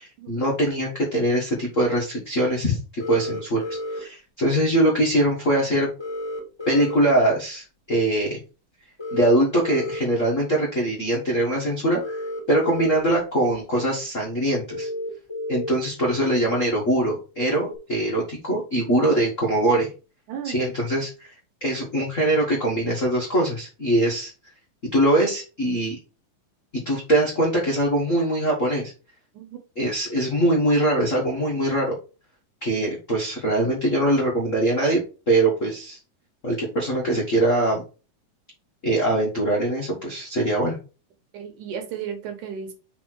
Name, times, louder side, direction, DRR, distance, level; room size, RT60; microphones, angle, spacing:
voice 1, 0.0-5.9 6.7-8.4 9.1-12.2 12.5-14.9 15.5-19.9 20.4-21.3 21.6-24.3 24.9-25.9 26.8-28.9 29.8-31.9 32.6-35.0 35.3-36.0 36.4-37.8 38.8-40.8, right 1 dB, 85° left, -2 dB, 0.6 m, -22 dB
sound 1, 3.0-4.0 6.0-7.0 9.0-10.0 12.0-13.0 13.5-13.6 14.7-15.7 17.7-17.8, left 1 dB, 10° left, 1.2 m, -31 dB
voice 2, 20.3-20.6 29.3-29.6 41.3-42.7, right 8 dB, 65° right, 5 dB, 2.4 m, -34 dB
5.3 x 4.3 x 4.7 m, 0.33 s
omnidirectional pair, 4.2 m